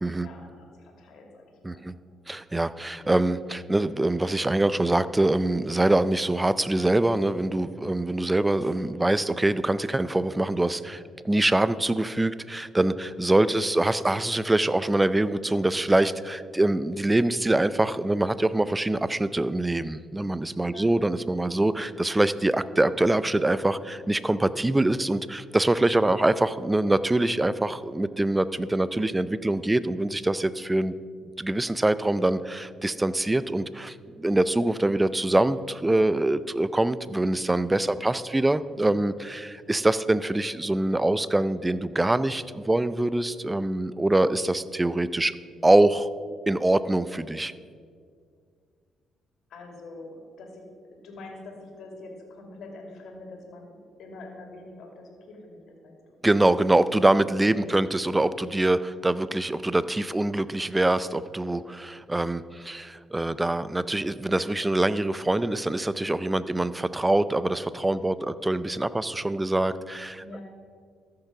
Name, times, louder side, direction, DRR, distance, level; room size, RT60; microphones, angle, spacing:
voice 1, 0.2-1.9 2.9-3.1 13.5-13.7 20.7-20.9 37.9-38.2 49.5-50.7 50.9-56.2 62.4-62.8 70.1-70.4, left 2 dB, 75° left, 1 dB, 2.3 m, -45 dB
voice 2, 2.3-30.9 31.4-45.3 45.6-46.1 46.5-47.5 56.2-70.2, right 2 dB, 15° right, 15 dB, 0.4 m, -24 dB
13.5 x 6.7 x 5.9 m, 2.1 s
cardioid pair, 90°, 0 cm